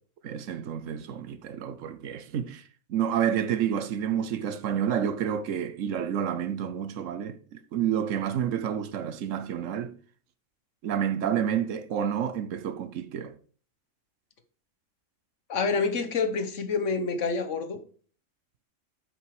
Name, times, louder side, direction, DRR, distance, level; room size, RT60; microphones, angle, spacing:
voice 1, 0.2-2.6 2.9-9.9 10.8-13.3, right 9 dB, 80° right, 1.1 m, -29 dB
voice 2, 15.5-17.8, left 4 dB, 70° left, 1.5 m, -27 dB
7.9 x 6.1 x 4.8 m
omnidirectional pair, 1.3 m